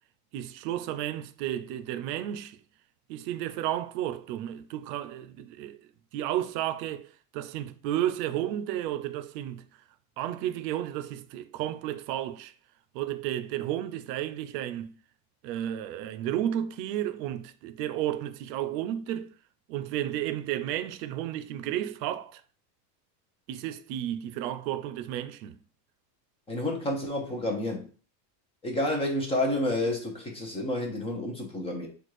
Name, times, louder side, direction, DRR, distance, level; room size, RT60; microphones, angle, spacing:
voice 1, 0.3-2.6 3.1-5.8 6.1-7.1 7.3-9.6 10.2-12.5 12.9-15.0 15.4-19.3 19.7-22.4 23.5-25.6, right 12 dB, 75° right, 0.7 m, -32 dB
voice 2, 26.5-27.8 28.6-31.9, left 1 dB, 10° left, 0.6 m, -29 dB
4.1 x 2.5 x 4.7 m
cardioid pair, 160°, 49 cm